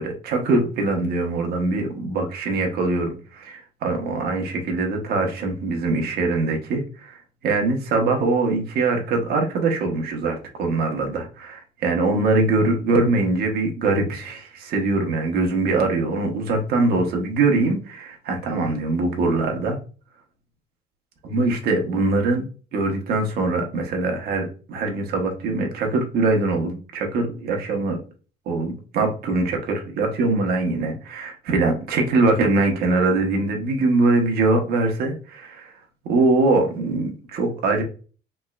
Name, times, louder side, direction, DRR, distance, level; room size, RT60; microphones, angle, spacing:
voice 1, 0.0-7.2 7.4-19.8 21.2-22.5 22.7-28.0 28.5-35.7 36.0-37.8, right 3 dB, 70° right, 3 dB, 1.0 m, -22 dB
3.5 x 3.2 x 2.4 m, 0.37 s
cardioid pair, 110°, 17 cm